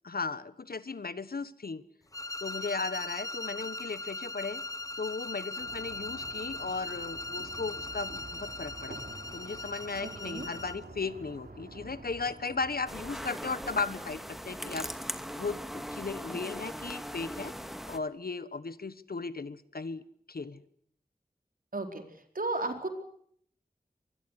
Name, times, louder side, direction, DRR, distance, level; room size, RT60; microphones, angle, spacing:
voice 1, 0.0-1.8 2.4-4.6 5.0-9.0 9.3-14.9 15.3-17.5 17.9-20.0 20.3-20.6, left 4 dB, 75° left, 15 dB, 1.3 m, -36 dB
sound 1, 2.1-10.9, left 2 dB, 20° left, 0.9 m, -39 dB
sound 2, 5.6-13.0, right 2 dB, 85° right, 4.0 m, -48 dB
voice 2, 10.0-10.5 21.7-22.0 22.3-22.9, right 2 dB, 65° right, 6 dB, 4.4 m, -34 dB
sound 3, 12.9-18.0, equal, ahead, 2.3 m, -39 dB
24.5 x 21.0 x 8.1 m, 0.64 s
wide cardioid pair, 50°, 15 cm